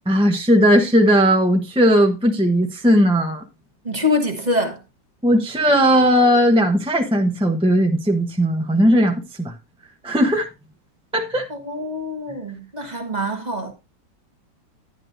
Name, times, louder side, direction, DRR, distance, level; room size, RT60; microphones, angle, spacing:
voice 1, 0.1-3.4 5.2-9.5 10.0-10.5 11.1-11.5, equal, 5° right, 0.6 m, -17 dB
voice 2, 3.8-4.8 11.5-13.7, left 2 dB, 25° right, 1.1 m, -24 dB
11.0 x 10.5 x 2.6 m
omnidirectional pair, 2.1 m